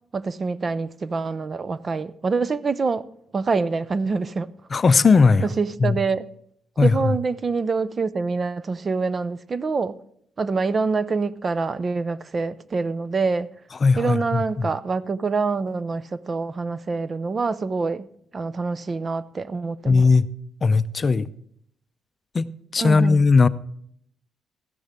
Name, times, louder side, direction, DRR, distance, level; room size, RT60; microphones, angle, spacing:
voice 1, 0.1-3.1 3.3-4.5 5.6-6.2 6.8-10.0 10.4-13.5 14.0-18.1 18.3-20.1 22.8-23.2, right 4 dB, 35° right, 0.5 m, -25 dB
voice 2, 4.7-5.5 5.8-6.0 6.8-7.1 13.8-14.7 19.9-20.3 20.6-21.3 22.3-23.5, left 4 dB, 35° left, 0.5 m, -18 dB
14.0 x 10.5 x 3.6 m
cardioid pair, 90°, 0 cm